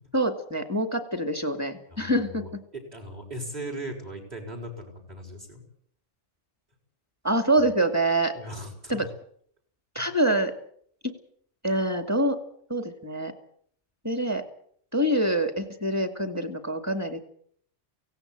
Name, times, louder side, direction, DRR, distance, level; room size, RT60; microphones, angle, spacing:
voice 1, 0.1-2.6 7.2-8.3 8.9-9.1 9.9-10.5 11.6-12.4 12.7-13.3 14.0-14.4 14.9-17.2, right 1 dB, 15° right, 8 dB, 2.4 m, -25 dB
voice 2, 1.9-5.6 8.4-9.1, right 1 dB, 35° right, 6 dB, 5.7 m, -38 dB
17.5 x 17.0 x 9.1 m, 0.62 s
omnidirectional pair, 1.2 m